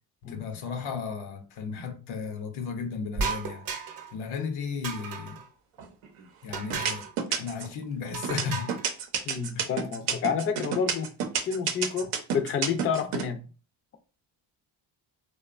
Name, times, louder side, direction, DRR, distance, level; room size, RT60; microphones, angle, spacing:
voice 1, 0.2-3.6 4.1-5.4 6.4-8.8 9.5-9.7, left 6 dB, 80° left, 0.7 m, -35 dB
sound 1, 3.2-4.1 4.8-5.5 6.5-7.1 8.1-8.9, right 5 dB, 45° right, 0.7 m, -34 dB
sound 2, 5.8-6.2 6.7-7.7 8.2-13.2, right 7 dB, 85° right, 0.6 m, -29 dB
voice 2, 9.3-11.1 11.4-13.4, left 6 dB, 30° left, 0.4 m, -29 dB
2.8 x 2.1 x 2.4 m
cardioid pair, 80°, 48 cm